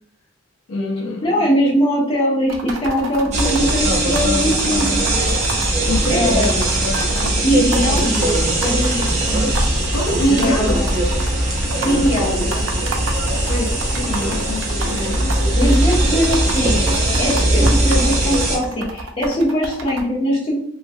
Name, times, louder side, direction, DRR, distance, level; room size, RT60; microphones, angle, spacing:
voice 1, 0.7-1.5 5.7-6.4 9.9-10.8 13.5-15.7, equal, 75° left, 0.5 m, -24 dB
voice 2, 1.2-5.1 6.1-6.5 7.4-9.5 10.2-10.9 11.8-12.7 15.5-20.5, equal, 25° left, 0.8 m, -21 dB
sound 1, 2.5-7.3 7.7-20.0, right 3 dB, 90° right, 0.5 m, -30 dB
sound 2, 3.3-18.6, right 1 dB, 35° right, 0.7 m, -19 dB
2.9 x 2.4 x 2.5 m
head